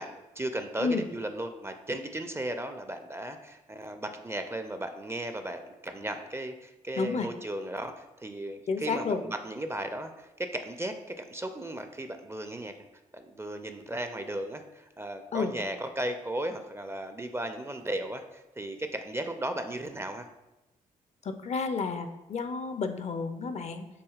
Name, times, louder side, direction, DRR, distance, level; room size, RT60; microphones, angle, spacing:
voice 1, 0.0-12.7 13.1-20.3, right 1 dB, 15° right, 7 dB, 0.4 m, -36 dB
voice 2, 7.0-7.3 8.7-9.2 15.3-15.5 21.2-23.9, left 4 dB, 45° left, 8 dB, 0.4 m, -31 dB
6.2 x 2.7 x 2.4 m, 0.99 s
hypercardioid pair, 40°, 16 cm